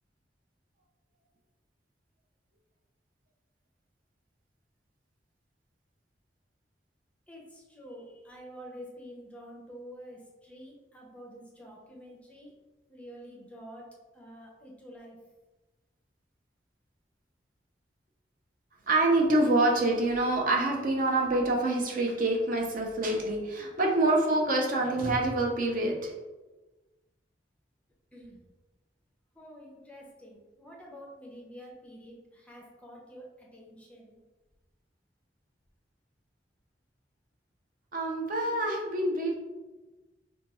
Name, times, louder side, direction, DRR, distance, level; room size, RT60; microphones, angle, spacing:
voice 1, 7.3-12.5 12.9-13.9 14.1-15.2 28.1-28.4 29.3-34.2, equal, 5° left, -2 dB, 0.5 m, -48 dB
voice 2, 18.9-26.1 37.9-39.3, right 2 dB, 50° right, 0 dB, 0.6 m, -26 dB
4.1 x 2.2 x 2.9 m, 1.2 s
head